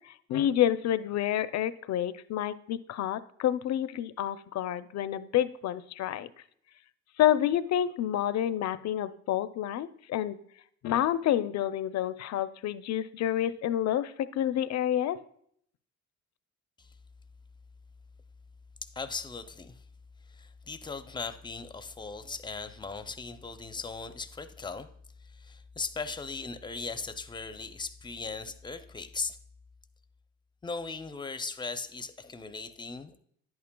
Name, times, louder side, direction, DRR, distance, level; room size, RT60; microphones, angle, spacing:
voice 1, 0.3-6.3 7.2-10.4 10.8-15.2, left 11 dB, 60° left, 14 dB, 0.5 m, -28 dB
voice 2, 18.8-19.8 20.3-24.9 25.2-29.4 30.6-33.2, left 4 dB, 15° left, 10 dB, 0.5 m, -38 dB
10.5 x 8.6 x 2.2 m, 0.66 s
cardioid pair, 90°, 30 cm